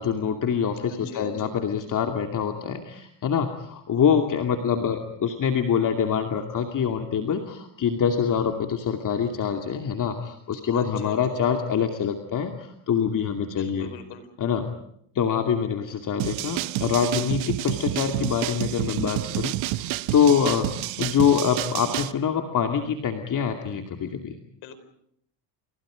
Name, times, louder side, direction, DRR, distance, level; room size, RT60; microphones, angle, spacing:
voice 1, 0.0-13.9 14.4-14.6 15.1-24.3, left 7 dB, 40° left, 4 dB, 2.6 m, -25 dB
voice 2, 0.8-1.5 10.7-11.3 13.5-14.3 24.6-24.8, left 6 dB, 70° left, 11 dB, 5.1 m, -42 dB
sound 1, 16.2-22.1, right 17 dB, 70° right, 1.3 m, -29 dB
30.0 x 29.5 x 5.1 m, 0.70 s
cardioid pair, 115°, 48 cm